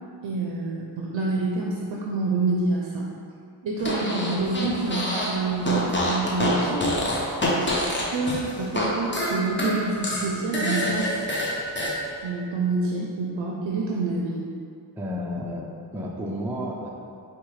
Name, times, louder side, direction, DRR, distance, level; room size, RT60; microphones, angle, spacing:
voice 1, 0.2-3.1 3.6-6.9 7.5-7.7 8.1-11.2 12.2-14.5, right 3 dB, 70° right, -2 dB, 0.5 m, -27 dB
Fart, 3.8-5.4 5.6-8.9 9.1-11.9, left 1 dB, 25° left, 0.8 m, -26 dB
voice 2, 15.0-15.6 15.9-16.9, equal, 5° right, -2 dB, 0.4 m, -31 dB
4.7 x 2.3 x 3.0 m, 2.4 s
cardioid pair, 50°, 46 cm